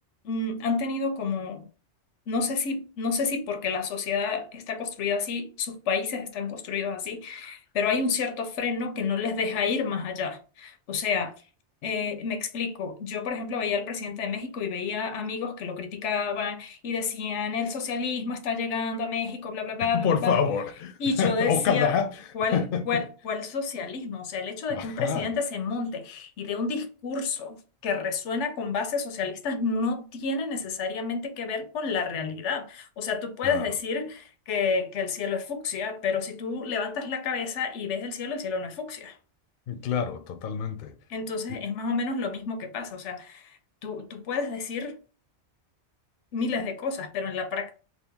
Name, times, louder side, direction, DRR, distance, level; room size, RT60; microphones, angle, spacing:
voice 1, 0.2-1.6 2.3-11.3 11.8-20.4 21.0-22.0 22.3-27.6 27.8-39.2 41.1-43.5 43.8-44.9 46.3-47.8, left 5 dB, 85° left, 0.9 m, -30 dB
voice 2, 20.0-22.1 22.5-23.0 24.7-25.3 33.4-33.7 39.7-40.9 41.5-41.6, left 6 dB, 60° left, 0.6 m, -27 dB
2.8 x 2.4 x 3.4 m
omnidirectional pair, 1.2 m